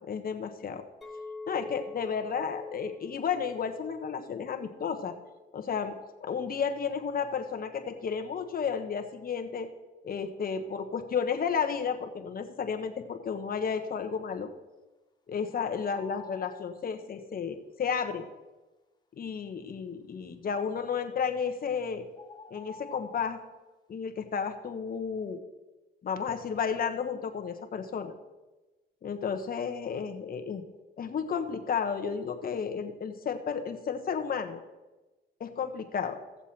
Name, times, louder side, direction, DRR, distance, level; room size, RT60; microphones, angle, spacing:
voice 1, 0.1-0.8 1.5-5.2 5.5-5.9 6.2-9.7 10.0-14.5 15.3-18.2 19.2-22.1 22.5-23.4 23.9-25.4 26.0-28.1 29.0-30.6 31.0-34.6 35.4-36.2, left 6 dB, 45° left, 6 dB, 1.3 m, -32 dB
Chink clink, 1.0-6.2, left 3 dB, ahead, 1.9 m, -46 dB
sound 1, 15.8-16.7 21.3-21.5 22.1-23.4, left 4 dB, 20° left, 1.2 m, -48 dB
15.5 x 7.1 x 4.4 m, 1.1 s
cardioid pair, 90°, 20 cm